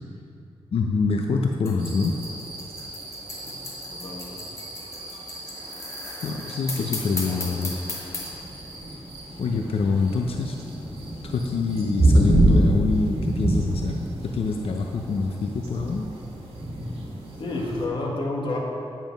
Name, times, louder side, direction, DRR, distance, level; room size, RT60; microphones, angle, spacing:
voice 1, 0.7-2.1 6.2-7.8 9.4-10.6 11.2-16.1, left 4 dB, 75° left, 2 dB, 0.7 m, -26 dB
sound 1, 1.6-8.3, left 2 dB, 30° left, 2.2 m, -36 dB
sound 2, 1.8-17.9, right 1 dB, 80° right, 2.1 m, -28 dB
voice 2, 3.9-4.5 17.4-18.6, left 2 dB, 55° left, -1 dB, 1.6 m, -30 dB
9.6 x 9.4 x 5.3 m, 2.6 s
wide cardioid pair, 145°, 10 cm